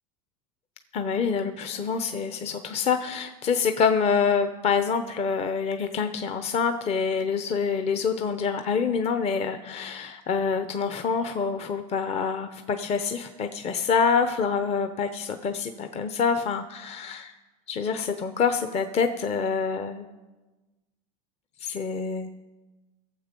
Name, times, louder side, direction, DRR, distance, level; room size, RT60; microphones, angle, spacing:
voice 1, 0.9-17.4 17.7-20.1 21.6-22.3, left 6 dB, 30° left, 8 dB, 0.8 m, -26 dB
18.0 x 7.4 x 5.3 m, 1.2 s
supercardioid pair, 110°, 20 cm